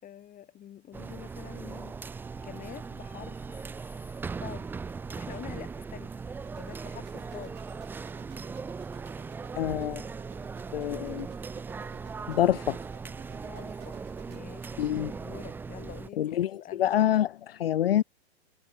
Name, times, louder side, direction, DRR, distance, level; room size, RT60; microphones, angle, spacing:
voice 1, 0.0-2.0 2.4-3.6 4.4-4.7 5.2-7.6 13.3-14.0 14.3-16.9, left 11 dB, 25° left, 5.7 m, -46 dB
sound 1, 0.9-16.1, right 5 dB, 5° right, 0.5 m, -39 dB
sound 2, 6.4-14.4, right 16 dB, 35° right, 7.4 m, -55 dB
voice 2, 9.5-10.0 10.7-11.3 12.3-12.8 14.8-15.1 16.2-18.0, left 11 dB, 65° left, 1.1 m, -26 dB
figure-of-eight pair, 110°, 32 cm